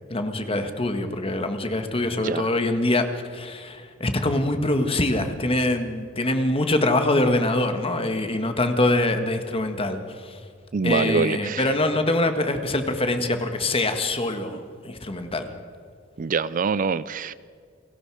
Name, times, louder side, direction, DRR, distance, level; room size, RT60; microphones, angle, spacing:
voice 1, 0.1-3.1 3.3-10.4 10.8-15.5, left 2 dB, 30° left, 7 dB, 1.7 m, -24 dB
voice 2, 10.7-11.8 16.2-17.3, right 5 dB, 40° right, 17 dB, 0.4 m, -25 dB
29.5 x 18.0 x 4.9 m, 2.2 s
head